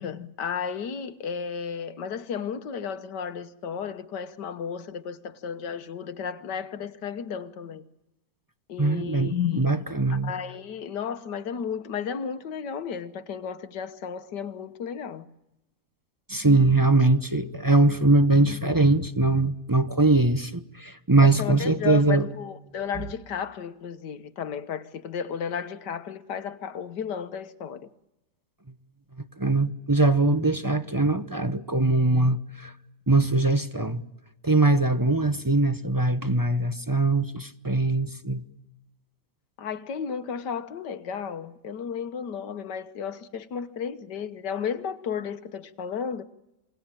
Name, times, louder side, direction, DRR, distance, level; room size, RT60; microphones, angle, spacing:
voice 1, 0.0-7.8 8.7-15.3 21.2-27.9 39.6-46.2, left 7 dB, 80° left, 1.8 m, -33 dB
voice 2, 8.8-10.3 16.3-22.3 29.4-32.7 33.1-34.0 34.4-38.4, right 2 dB, 20° right, 0.6 m, -22 dB
27.0 x 21.5 x 9.0 m
omnidirectional pair, 1.8 m